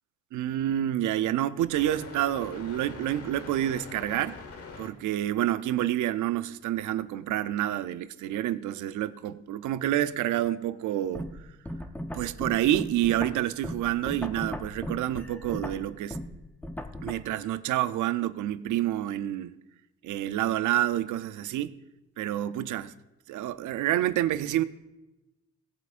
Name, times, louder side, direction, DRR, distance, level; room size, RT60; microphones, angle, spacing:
voice 1, 0.3-4.4 4.8-11.3 12.1-16.2 17.0-19.5 20.0-21.8 22.2-22.9 23.3-24.6, right 13 dB, 80° right, 0.6 m, -28 dB
sound 1, 1.7-4.9, left 4 dB, 50° left, 1.3 m, -44 dB
sound 2, 11.1-17.1, equal, 5° left, 0.7 m, -37 dB
17.5 x 8.1 x 2.5 m
cardioid pair, 90°, 30 cm